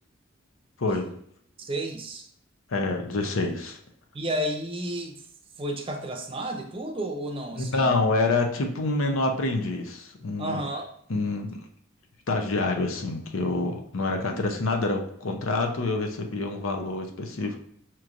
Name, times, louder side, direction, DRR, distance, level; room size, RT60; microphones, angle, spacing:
voice 1, 0.8-1.1 2.7-3.8 7.6-10.7 11.1-11.6 12.3-17.6, left 2 dB, 90° left, 3 dB, 0.7 m, -27 dB
voice 2, 1.6-2.3 4.1-5.2 5.6-7.9 10.4-10.9 14.2-14.4, right 1 dB, 25° right, 4 dB, 0.5 m, -32 dB
5.7 x 3.0 x 2.5 m, 0.68 s
head